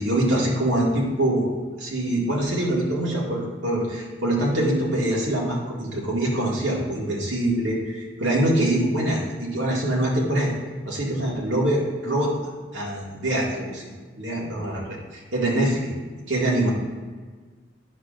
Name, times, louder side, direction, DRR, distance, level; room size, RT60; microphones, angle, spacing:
voice 1, 0.0-1.5 1.8-10.5 10.9-12.3 12.7-13.8 14.2-15.9 16.3-16.7, right 1 dB, 80° right, -4 dB, 1.9 m, -24 dB
9.5 x 6.6 x 2.5 m, 1.4 s
head